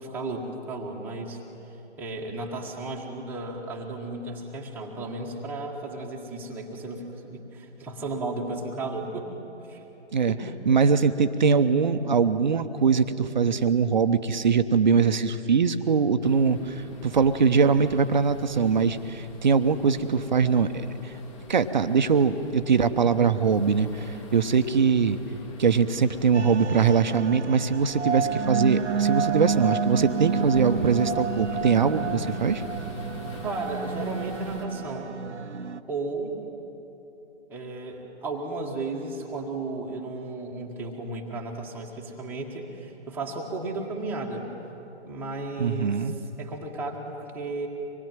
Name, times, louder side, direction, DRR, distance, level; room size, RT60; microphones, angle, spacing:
voice 1, 0.0-1.4 2.0-9.3 9.7-9.8 10.3-10.6 23.0-23.4 33.4-35.2 35.9-36.4 37.5-44.5 45.0-47.7, right 2 dB, 5° right, -1 dB, 1.5 m, -34 dB
voice 2, 10.7-21.1 21.5-25.2 25.6-32.6 45.6-46.1, right 5 dB, 40° right, 9 dB, 0.9 m, -22 dB
sound 1, 16.2-34.7, left 3 dB, 25° left, 2.3 m, -45 dB
sound 2, 26.3-35.8, right 6 dB, 80° right, 0.9 m, -30 dB
25.5 x 20.0 x 9.1 m, 3.0 s
figure-of-eight pair, 145°, 35 cm